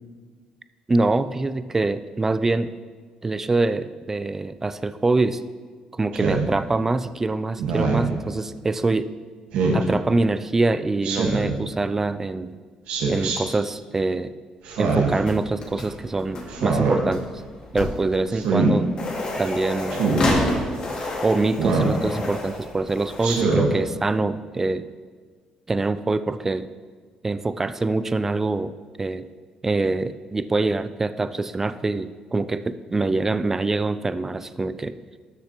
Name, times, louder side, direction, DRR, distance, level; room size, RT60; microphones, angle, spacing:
voice 1, 0.9-2.7 3.2-5.4 5.9-9.1 9.7-12.6 13.1-14.3 14.8-17.4 17.7-18.9 19.4-20.7 21.2-24.9 25.7-26.7 27.2-28.7 29.0-29.3 29.6-35.0, right 3 dB, 20° right, 13 dB, 0.4 m, -24 dB
Speech synthesizer, 6.1-6.5 7.6-8.1 9.5-9.8 11.0-11.5 12.9-13.4 14.6-15.2 16.5-17.0 18.3-18.7 19.9-20.2 21.6-22.0 23.2-23.7, right 4 dB, 85° right, 1.5 m, -22 dB
sound 1, 15.2-23.4, left 2 dB, 45° left, 1.9 m, -30 dB
13.0 x 6.7 x 3.0 m, 1.6 s
cardioid pair, 110°, 2 cm